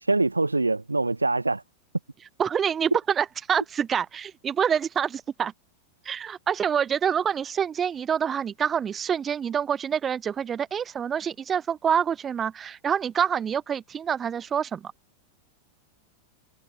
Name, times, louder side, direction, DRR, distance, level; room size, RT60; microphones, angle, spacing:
voice 1, 0.0-1.6, right 2 dB, 80° right, 1.0 m, -24 dB
voice 2, 2.4-5.5 6.0-14.9, right 8 dB, 20° right, 0.7 m, -26 dB
figure-of-eight pair, 90°, 0 cm